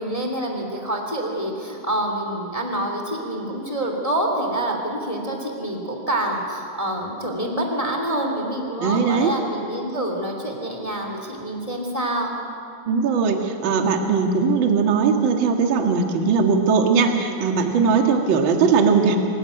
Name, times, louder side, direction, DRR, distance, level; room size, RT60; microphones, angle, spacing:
voice 1, 0.0-12.3, right 1 dB, 10° left, 2 dB, 1.9 m, -27 dB
voice 2, 8.8-9.3 12.9-19.2, right 5 dB, 45° right, 3 dB, 1.7 m, -19 dB
25.0 x 15.5 x 9.1 m, 2.6 s
omnidirectional pair, 4.6 m